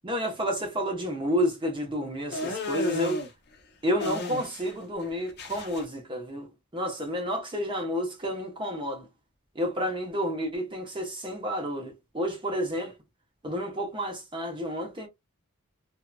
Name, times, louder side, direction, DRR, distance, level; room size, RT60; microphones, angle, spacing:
voice 1, 0.0-3.2 3.8-9.1 9.6-12.9 13.4-15.1, equal, 20° right, 0.9 m, -30 dB
sound 1, 2.3-3.3 4.0-4.8 5.0-5.8, left 2 dB, 45° left, 0.6 m, -32 dB
2.7 x 2.5 x 2.2 m
head